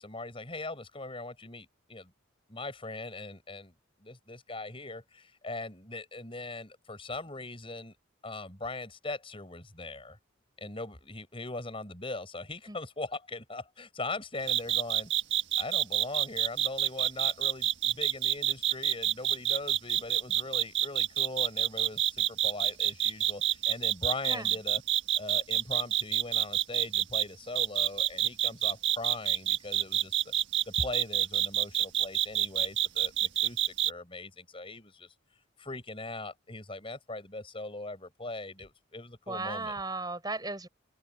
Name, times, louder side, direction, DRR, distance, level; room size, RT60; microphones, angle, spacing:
voice 1, 0.0-2.1 2.5-3.7 4.0-8.0 8.2-10.2 10.6-15.1 15.6-24.8 25.2-30.2 30.7-35.1 35.6-39.8, left 2 dB, 25° left, 5.2 m, -40 dB
sound 1, 14.5-27.2 27.5-33.9, right 12 dB, 60° right, 1.7 m, -27 dB
voice 2, 39.3-40.7, right 3 dB, 20° right, 6.1 m, -35 dB
open air
head